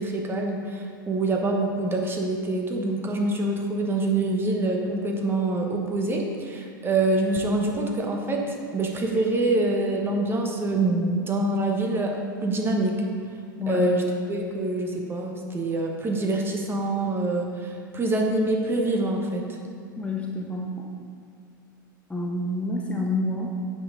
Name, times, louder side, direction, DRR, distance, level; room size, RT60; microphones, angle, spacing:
voice 1, 0.0-12.2 12.4-13.0 13.7-19.6, right 2 dB, 20° right, 1 dB, 1.1 m, -25 dB
voice 2, 20.0-20.7 22.1-23.6, left 2 dB, 10° left, -1 dB, 0.8 m, -28 dB
9.3 x 5.4 x 3.8 m, 2.1 s
hypercardioid pair, 95°, 11 cm